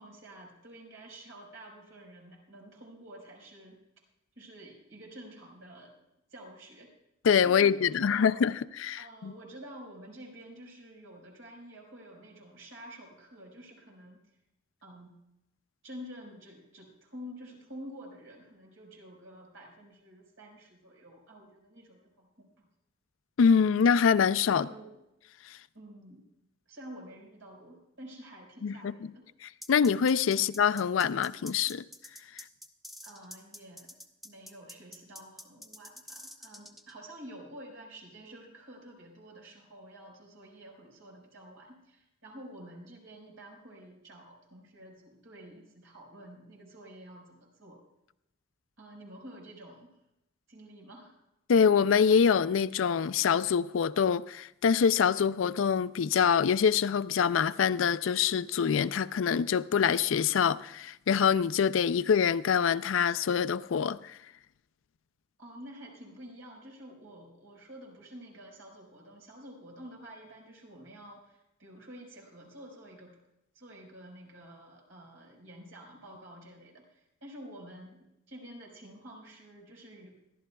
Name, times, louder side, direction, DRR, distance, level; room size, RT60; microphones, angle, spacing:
voice 1, 0.0-3.8 4.3-5.9 6.3-6.9 7.4-8.4 9.0-14.2 14.8-15.1 15.8-22.7 24.5-25.0 25.7-26.2 26.7-29.2 30.3-30.4 33.0-33.9 34.2-47.8 48.8-50.0 50.5-51.1 65.4-73.2 73.5-80.2, equal, 90° right, 4.8 m, -49 dB
voice 2, 7.2-9.3 23.4-24.7 25.5-25.6 28.6-28.9 29.4-31.8 51.5-64.2, left 7 dB, 85° left, 0.4 m, -25 dB
sound 1, 29.6-36.9, left 1 dB, ahead, 0.5 m, -47 dB
26.0 x 12.0 x 2.3 m
head